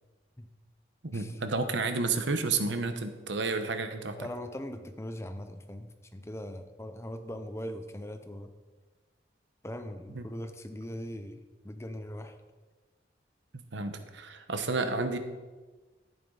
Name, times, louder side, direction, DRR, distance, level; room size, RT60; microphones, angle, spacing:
voice 1, 1.0-4.3 10.1-10.2 13.7-15.2, right 3 dB, 90° right, 8 dB, 1.0 m, -31 dB
voice 2, 4.2-8.5 9.6-12.4, equal, 15° left, 8 dB, 0.6 m, -40 dB
11.5 x 10.5 x 3.9 m, 1.3 s
head